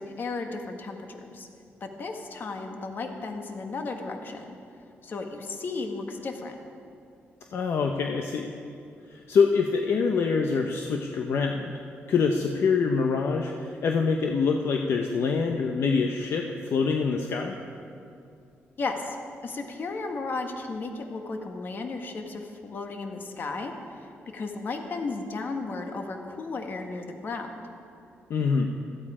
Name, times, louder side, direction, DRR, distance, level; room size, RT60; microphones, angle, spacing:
voice 1, 0.0-1.5 1.8-4.6 5.0-6.5 18.8-19.2 19.4-27.5, left 3 dB, 45° left, 4 dB, 1.5 m, -34 dB
voice 2, 7.5-8.5 9.1-11.8 12.1-17.6 28.3-28.7, left 5 dB, 65° left, 3 dB, 0.8 m, -25 dB
16.0 x 13.5 x 5.0 m, 2.5 s
cardioid pair, 130°, 5 cm